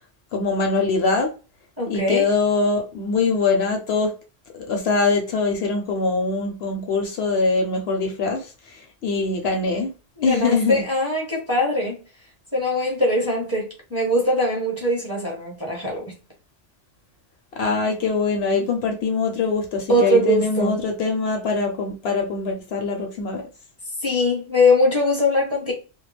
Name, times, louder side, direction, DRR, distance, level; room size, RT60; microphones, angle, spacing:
voice 1, 0.3-1.3 1.9-4.1 4.5-9.9 10.2-10.8 17.5-23.5, left 4 dB, 65° left, 0.8 m, -23 dB
voice 2, 1.8-2.3 10.2-12.0 12.5-16.1 18.6-18.7 19.9-20.8 24.0-25.7, left 1 dB, 15° right, 0.7 m, -21 dB
2.2 x 2.2 x 3.2 m
omnidirectional pair, 1.2 m